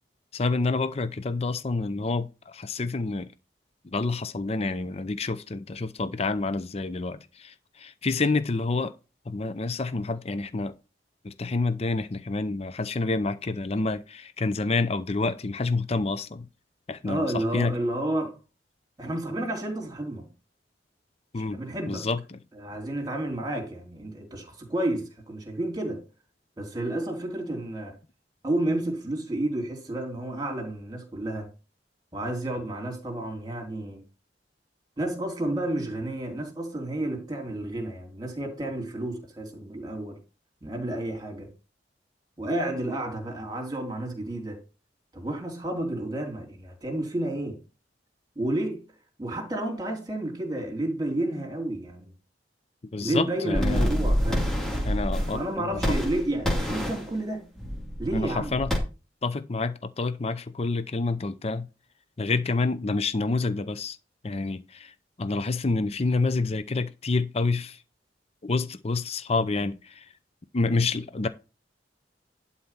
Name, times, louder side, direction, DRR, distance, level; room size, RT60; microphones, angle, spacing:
voice 1, 0.3-2.3 2.5-3.3 3.9-7.5 7.8-8.9 9.3-10.7 11.2-16.5 16.9-17.7 21.3-21.6 21.9-22.2 52.9-53.9 54.9-55.8 58.1-58.7 59.2-61.7 62.2-64.0 64.2-64.9 65.2-67.8 68.4-70.0 70.5-71.3, left 3 dB, 35° left, 0.6 m, -28 dB
voice 2, 17.0-18.4 19.0-20.3 21.4-22.1 22.5-26.0 26.6-28.0 28.4-31.5 32.1-34.0 35.0-40.2 40.6-41.5 42.4-44.6 45.1-47.6 48.3-48.8 49.2-52.1 53.0-54.5 55.2-57.4 58.0-58.5, right 1 dB, 25° right, 3.2 m, -31 dB
sound 1, 53.5-55.4 55.7-57.0 57.6-58.8, equal, 5° left, 2.6 m, -27 dB
11.5 x 4.2 x 5.8 m
head